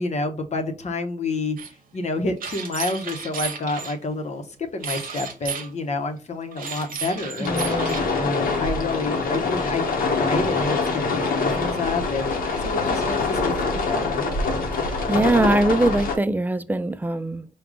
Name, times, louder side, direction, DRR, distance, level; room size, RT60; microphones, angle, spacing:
voice 1, 0.0-4.5 4.7-7.6 8.2-9.9 10.2-12.3 12.6-14.2, left 3 dB, 50° left, 0.8 m, -29 dB
sound 1, 1.6-1.7 2.4-3.9 4.8-5.7 6.5-8.0, right 6 dB, 80° right, 0.8 m, -33 dB
sound 2, 7.4-16.1, left 3 dB, 85° left, 0.9 m, -24 dB
voice 2, 7.4-8.0 14.7-17.5, right 2 dB, 10° right, 0.4 m, -22 dB
4.9 x 2.3 x 3.7 m
cardioid pair, 75°, 14 cm